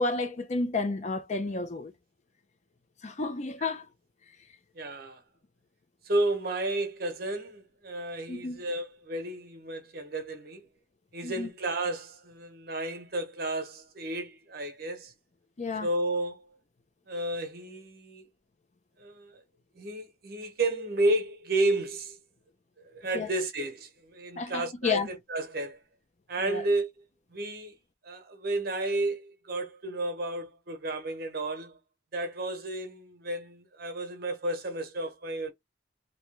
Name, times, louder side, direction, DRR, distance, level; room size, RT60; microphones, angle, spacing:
voice 1, 0.0-1.9 3.0-3.9 8.3-8.6 11.2-11.5 15.6-15.9 23.1-23.3 24.4-25.1 26.4-26.6, left 3 dB, 40° left, 0.5 m, -31 dB
voice 2, 4.7-5.2 6.0-10.7 11.1-15.1 15.8-16.5 17.1-18.3 19.0-19.4 19.7-22.2 22.8-25.8 26.3-26.9 27.3-27.8 28.0-31.8 32.1-35.5, right 2 dB, 55° right, 0.9 m, -32 dB
3.0 x 2.7 x 3.2 m
head